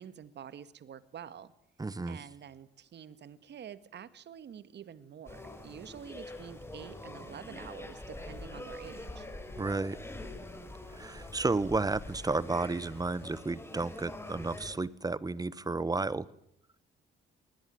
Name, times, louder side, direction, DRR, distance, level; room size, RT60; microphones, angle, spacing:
voice 1, 0.0-1.5 2.1-9.3, right 8 dB, 60° right, 15 dB, 1.8 m, -48 dB
voice 2, 1.8-2.2 9.6-10.0 10.9-16.3, right 3 dB, 20° right, 19 dB, 1.2 m, -32 dB
sound 1, 5.3-14.8, left 2 dB, 10° left, 6.2 m, -45 dB
24.0 x 20.5 x 9.4 m, 0.73 s
cardioid pair, 90°, 20 cm